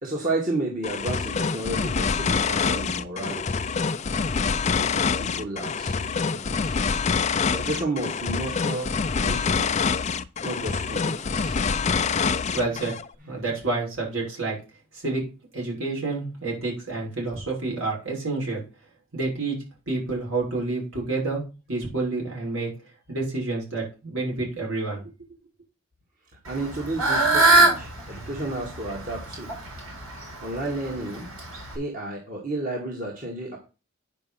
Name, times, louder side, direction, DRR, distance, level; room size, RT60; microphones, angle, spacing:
voice 1, 0.0-3.6 4.8-6.0 6.3-6.8 7.5-9.8 10.4-12.6 13.4-13.5 26.5-29.5 30.4-31.3 31.8-33.6, right 2 dB, 40° right, -1 dB, 2.0 m, -32 dB
sound 1, 0.8-13.1, left 5 dB, 35° left, 0.4 m, -26 dB
voice 2, 12.5-12.9 13.3-14.6 14.9-15.2 15.5-18.6 19.1-19.6 19.9-21.4 21.7-22.7 23.1-25.1, right 3 dB, 70° right, -3 dB, 6.2 m, -28 dB
Fowl / Bird, 26.5-31.8, right 2 dB, 90° right, 6.0 m, -23 dB
9.7 x 5.4 x 5.7 m, 0.32 s
head